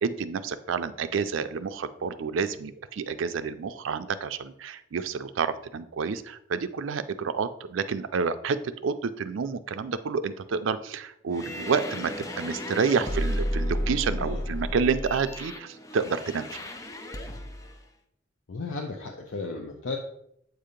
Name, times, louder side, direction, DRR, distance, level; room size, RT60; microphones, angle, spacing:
voice 1, 0.0-16.6, right 5 dB, 85° right, 11 dB, 0.4 m, -29 dB
sound 1, 11.3-17.7, equal, 15° left, 0.4 m, -33 dB
voice 2, 18.5-20.0, left 3 dB, 75° left, 2 dB, 0.6 m, -34 dB
7.9 x 2.8 x 5.0 m, 0.75 s
head